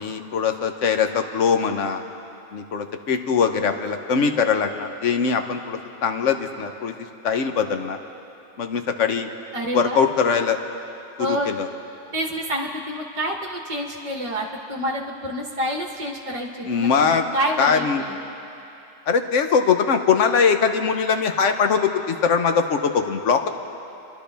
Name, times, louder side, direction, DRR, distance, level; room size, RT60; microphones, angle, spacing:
voice 1, 0.0-2.0 2.5-6.9 7.2-8.0 8.6-9.3 9.7-10.6 11.2-11.7 16.7-17.2 17.6-18.0 19.1-23.5, left 6 dB, 80° left, 7 dB, 1.2 m, -21 dB
voice 2, 9.5-10.0 11.2-11.5 12.1-18.2, equal, 30° right, 0 dB, 0.9 m, -28 dB
28.5 x 11.5 x 3.4 m, 2.8 s
omnidirectional pair, 1.2 m